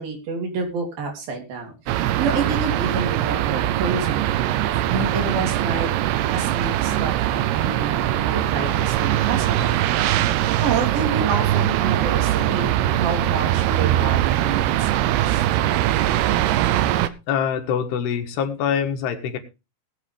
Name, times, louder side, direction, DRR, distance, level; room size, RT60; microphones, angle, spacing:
voice 1, 0.0-5.9 6.3-9.8 10.6-15.4, right 4 dB, 65° right, 2 dB, 4.9 m, -29 dB
sound 1, 1.9-17.1, right 13 dB, 85° right, 2.8 m, -21 dB
voice 2, 17.3-19.4, left 8 dB, 90° left, 6 dB, 3.6 m, -24 dB
19.5 x 8.5 x 3.4 m, 0.28 s
omnidirectional pair, 4.6 m